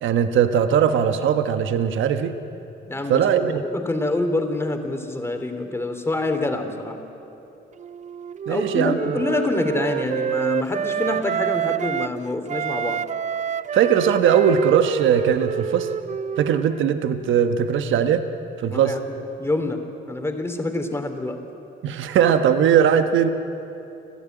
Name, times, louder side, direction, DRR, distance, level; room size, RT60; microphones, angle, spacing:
voice 1, 0.0-2.3 3.1-3.6 8.5-9.2 13.7-15.9 16.4-18.2 18.6-18.9 21.8-23.3, right 8 dB, 80° right, 9 dB, 1.2 m, -19 dB
voice 2, 2.9-7.0 8.5-13.0 18.7-19.0 19.4-21.4, left 2 dB, 10° left, 5 dB, 2.7 m, -26 dB
Wind instrument woodwind instrument, 7.8-12.2 12.5-17.0, right 8 dB, 40° right, 0.4 m, -28 dB
30.0 x 12.5 x 9.2 m, 2.9 s
cardioid pair, 90°, 20 cm